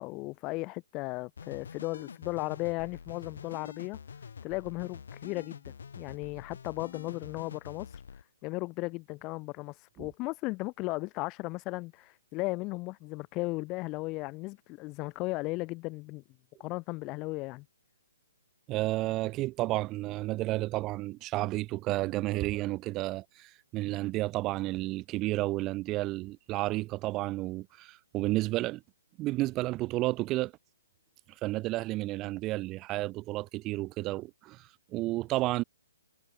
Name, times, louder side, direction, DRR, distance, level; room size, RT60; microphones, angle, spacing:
voice 1, 0.0-4.0 4.4-8.0 8.4-16.2 16.6-17.6, left 23 dB, 25° left, 1.5 m, -36 dB
sound 1, 1.4-8.2, left 6 dB, 70° left, 5.0 m, -46 dB
voice 2, 18.7-28.8 29.2-30.5 31.4-35.6, right 18 dB, 25° right, 0.6 m, -31 dB
hypercardioid pair, 145°, 0 cm